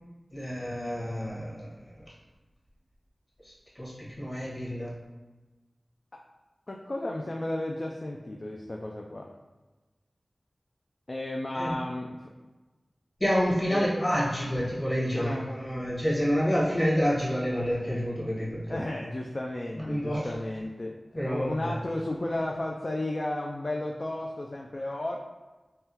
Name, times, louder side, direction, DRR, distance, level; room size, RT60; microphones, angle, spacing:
voice 1, 0.3-1.8 3.4-4.9 11.5-11.7 13.2-18.8 19.7-20.3 21.1-21.7, equal, 30° left, -6 dB, 1.4 m, -28 dB
voice 2, 6.7-9.3 11.1-12.3 13.7-13.9 15.1-15.5 18.7-20.9 21.2-25.2, left 1 dB, 50° left, 0 dB, 0.3 m, -33 dB
3.5 x 2.2 x 2.8 m, 1.2 s
cardioid pair, 40°, 0 cm